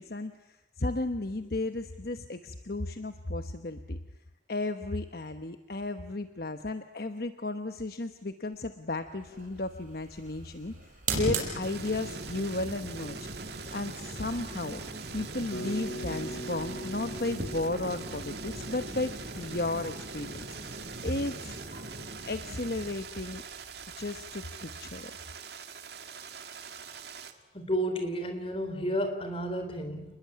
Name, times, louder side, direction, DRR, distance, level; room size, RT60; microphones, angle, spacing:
voice 1, 0.0-4.0 4.5-10.7 11.1-14.8 15.1-21.6 22.3-23.4 24.0-25.1, left 2 dB, 55° left, 8 dB, 1.1 m, -34 dB
sound 1, 9.2-24.5, right 2 dB, 45° right, 5.8 m, -40 dB
sound 2, 11.6-27.3, right 7 dB, 65° right, 2.1 m, -44 dB
Bass guitar, 15.5-19.6, equal, 85° left, 1.7 m, -42 dB
voice 2, 27.5-30.1, equal, 30° left, 7 dB, 3.8 m, -31 dB
29.0 x 21.0 x 8.7 m, 0.96 s
head